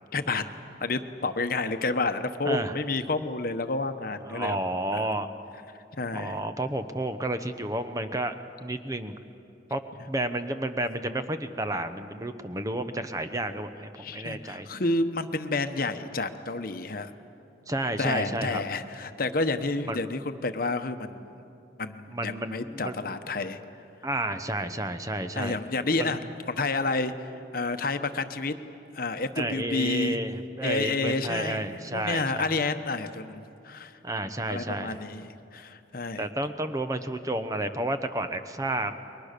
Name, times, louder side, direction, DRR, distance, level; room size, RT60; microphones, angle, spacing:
voice 1, 0.1-0.4 0.8-4.6 4.9-5.1 6.0-6.4 14.0-17.1 18.0-21.4 21.8-23.6 25.3-26.2 26.5-27.3 27.5-28.6 28.9-30.2 30.6-34.0 34.5-36.3, left 3 dB, 50° left, 9 dB, 1.0 m, -30 dB
voice 2, 2.4-2.8 4.2-5.3 6.1-8.3 8.6-9.1 9.7-9.8 10.1-14.7 17.7-18.6 19.9-20.0 22.1-23.0 24.0-25.6 26.0-26.1 29.4-32.6 34.0-35.0 36.2-38.9, right 1 dB, 20° right, 9 dB, 0.8 m, -31 dB
29.5 x 22.5 x 6.7 m, 2.7 s
head